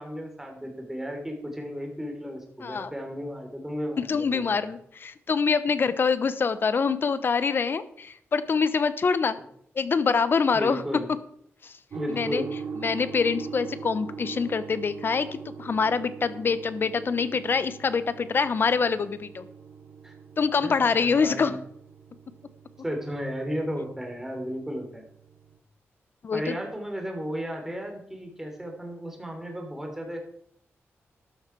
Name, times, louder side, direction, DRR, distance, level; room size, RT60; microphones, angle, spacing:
voice 1, 0.0-4.7 10.5-11.1 11.9-12.5 20.0-20.1 20.6-21.6 22.8-25.0 26.3-30.2, equal, 10° right, 2 dB, 3.5 m, -34 dB
voice 2, 2.6-2.9 4.1-9.4 9.7-10.8 11.6-11.7 12.1-12.4 12.8-19.5 20.4-21.6 26.2-26.6, left 5 dB, 50° left, 14 dB, 1.0 m, -25 dB
sound 1, 11.9-25.6, right 5 dB, 60° right, 1.5 m, -42 dB
13.0 x 11.5 x 4.7 m, 0.67 s
wide cardioid pair, 115°, 5 cm